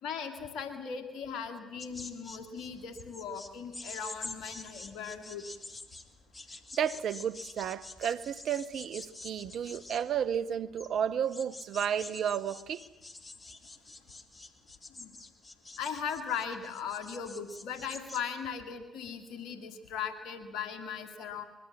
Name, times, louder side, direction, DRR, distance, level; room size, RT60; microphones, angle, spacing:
voice 1, 0.0-5.4 15.0-15.2 15.8-21.4, left 7 dB, 70° left, 2.3 m, -38 dB
sound 1, 1.8-18.2, left 2 dB, 30° left, 2.7 m, -47 dB
voice 2, 6.8-12.8, right 8 dB, 65° right, 0.9 m, -32 dB
23.5 x 22.5 x 7.4 m
hypercardioid pair, 45°, 0 cm